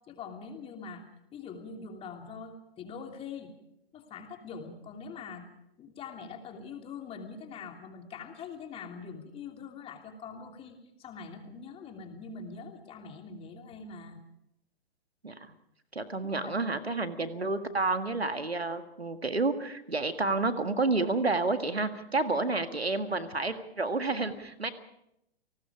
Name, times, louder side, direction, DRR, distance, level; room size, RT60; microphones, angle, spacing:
voice 1, 0.1-1.0 1.3-3.5 3.9-5.5 5.8-14.2 16.2-16.5, left 5 dB, 20° left, 4 dB, 2.9 m, -43 dB
voice 2, 15.9-24.7, right 3 dB, 85° right, 9 dB, 1.9 m, -30 dB
29.5 x 19.5 x 5.0 m, 0.79 s
figure-of-eight pair, 115°, 31 cm